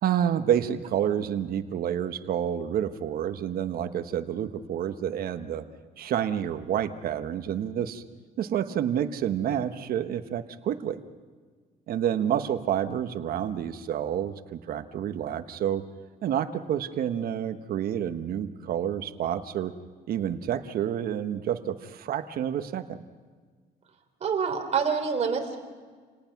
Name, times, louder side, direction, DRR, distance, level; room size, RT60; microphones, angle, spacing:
voice 1, 0.0-5.6 6.0-8.0 8.4-11.0 11.9-15.8 16.2-19.7 20.1-23.0, right 9 dB, 60° right, 10 dB, 1.2 m, -29 dB
voice 2, 24.2-25.6, right 6 dB, 40° right, 4 dB, 3.4 m, -26 dB
28.0 x 18.5 x 5.9 m, 1.5 s
cardioid pair, 110°, 17 cm